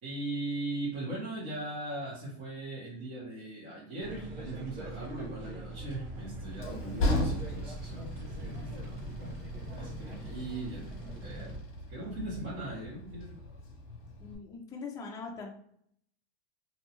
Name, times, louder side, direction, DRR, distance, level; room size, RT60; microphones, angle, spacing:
voice 1, 0.0-9.4 9.7-13.6, right 2 dB, 45° right, -7 dB, 1.1 m, -39 dB
sound 1, 4.0-11.6, right 1 dB, 75° right, 1.2 m, -42 dB
Train, 5.8-14.4, left 1 dB, 40° left, 0.9 m, -38 dB
voice 2, 14.2-15.5, left 4 dB, 10° left, -1 dB, 0.3 m, -41 dB
2.7 x 2.2 x 2.8 m, 0.68 s
supercardioid pair, 120°, 33 cm